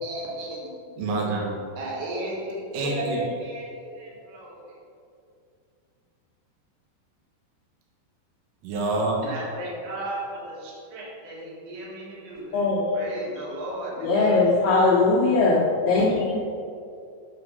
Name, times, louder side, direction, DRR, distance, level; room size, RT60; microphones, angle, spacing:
voice 1, 0.0-1.0 1.8-4.7 9.2-12.6 12.9-14.4, right 1 dB, 60° right, -4 dB, 2.6 m, -35 dB
voice 2, 1.0-1.5 2.7-3.2 8.6-9.2, right 2 dB, 75° right, -1 dB, 3.2 m, -26 dB
voice 3, 12.5-12.9 14.0-16.4, left 3 dB, 75° left, -5 dB, 2.6 m, -20 dB
9.5 x 3.8 x 5.3 m, 2.4 s
omnidirectional pair, 5.2 m